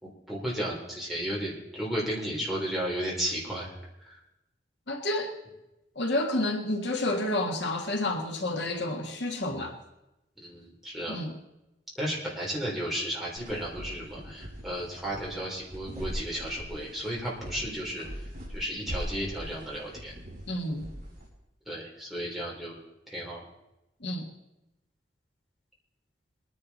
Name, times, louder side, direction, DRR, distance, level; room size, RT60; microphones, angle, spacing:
voice 1, 0.0-3.7 4.0-4.2 10.4-11.2 12.0-18.0 18.5-20.1 21.7-22.8 23.1-23.4, equal, ahead, 3.8 m, -34 dB
voice 2, 4.9-5.3 5.9-9.7 11.1-11.3 20.5-20.9 24.0-24.3, left 1 dB, 70° left, 1.7 m, -30 dB
sound 1, 13.3-21.3, equal, 45° right, 5.1 m, -41 dB
22.5 x 10.5 x 4.2 m
head